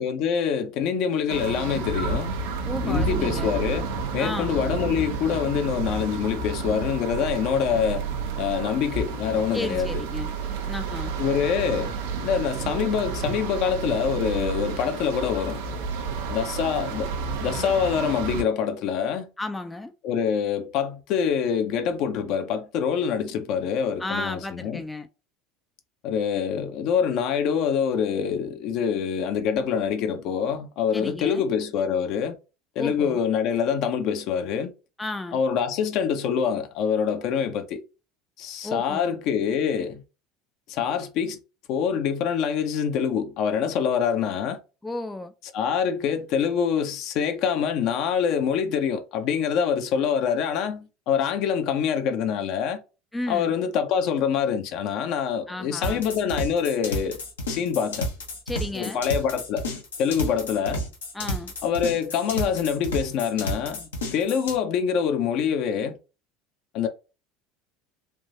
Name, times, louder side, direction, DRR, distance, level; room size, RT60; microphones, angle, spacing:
voice 1, 0.0-2.3 2.8-3.9 4.1-8.1 8.4-10.0 11.2-11.9 12.2-15.6 16.3-17.1 17.4-19.3 20.0-24.8 26.0-32.4 32.8-34.7 35.3-37.8 38.4-40.0 40.7-41.4 41.7-44.6 45.5-52.8 53.3-57.2 57.5-58.1 58.7-59.6 60.0-60.8 61.6-66.0 66.7-66.9, left 7 dB, 55° left, 0.6 m, -25 dB
sound 1, 1.3-18.4, right 4 dB, 70° right, 0.6 m, -30 dB
voice 2, 2.7-3.5 4.2-4.6 9.5-10.3 10.6-11.1 19.4-19.9 24.0-25.1 30.9-31.5 32.8-33.2 35.0-35.4 38.6-39.2 44.8-45.3 53.1-53.5 55.5-56.0 58.5-59.0 61.1-61.5, left 2 dB, 10° left, 0.4 m, -33 dB
sound 2, 55.8-64.6, left 1 dB, 80° left, 0.9 m, -31 dB
3.5 x 2.6 x 2.6 m
hypercardioid pair, 70°, 0 cm